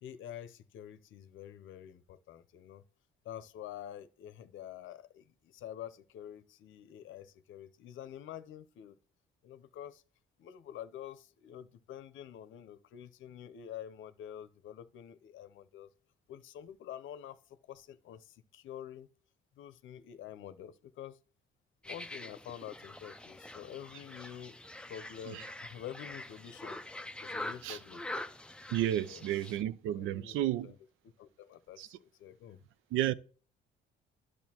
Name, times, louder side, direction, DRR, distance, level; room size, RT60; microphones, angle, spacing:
voice 1, 0.0-2.8 3.2-9.0 9.4-10.0 10.4-15.9 16.3-19.1 19.6-21.2 21.9-24.6 24.9-26.8 27.2-28.0 29.0-29.2 29.9-30.4 30.6-30.8 31.0-32.6, left 10 dB, 75° left, 0.7 m, -47 dB
sound 1, 21.8-29.6, left 1 dB, 5° left, 0.4 m, -45 dB
voice 2, 28.7-30.7 31.8-31.9 32.9-33.1, right 12 dB, 90° right, 0.4 m, -32 dB
10.5 x 6.6 x 2.9 m
cardioid pair, 90°, 20 cm